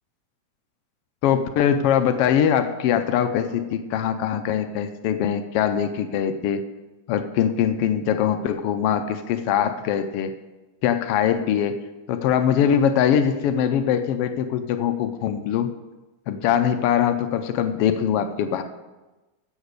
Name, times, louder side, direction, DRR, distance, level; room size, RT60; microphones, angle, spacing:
voice 1, 1.2-6.6 7.1-10.3 10.8-11.8 12.1-15.7 16.3-18.6, left 9 dB, 80° left, 8 dB, 1.3 m, -22 dB
10.5 x 8.1 x 6.6 m, 1.1 s
omnidirectional pair, 3.4 m